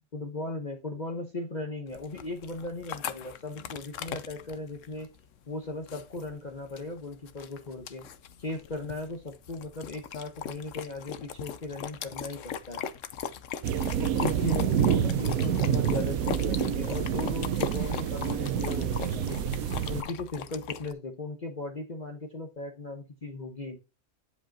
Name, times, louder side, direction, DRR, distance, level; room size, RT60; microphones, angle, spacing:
voice 1, 0.1-5.1 5.5-8.1 8.4-12.8 14.0-19.4 19.9-23.8, left 2 dB, 35° left, 2 dB, 1.1 m, -37 dB
sound 1, 1.9-20.9, left 8 dB, 65° left, 1.0 m, -39 dB
sound 2, 13.6-20.0, right 9 dB, 75° right, 1.1 m, -28 dB
10.5 x 5.1 x 2.9 m, 0.27 s
omnidirectional pair, 1.5 m